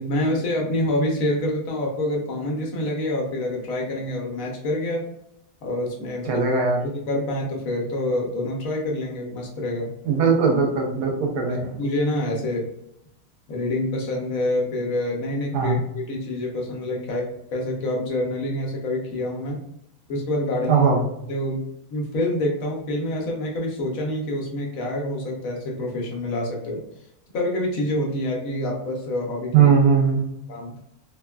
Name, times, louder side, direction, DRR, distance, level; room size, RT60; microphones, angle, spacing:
voice 1, 0.0-5.0 5.6-6.5 6.8-9.9 11.5-12.7 13.5-19.6 20.1-20.9 21.3-26.8 27.3-29.7 30.5-30.8, left 1 dB, 65° left, -1 dB, 1.0 m, -27 dB
voice 2, 6.3-6.8 10.1-11.7 15.5-15.8 20.7-21.0 29.5-30.2, right 5 dB, 90° right, 1 dB, 1.3 m, -19 dB
3.5 x 2.2 x 2.2 m, 0.78 s
omnidirectional pair, 1.7 m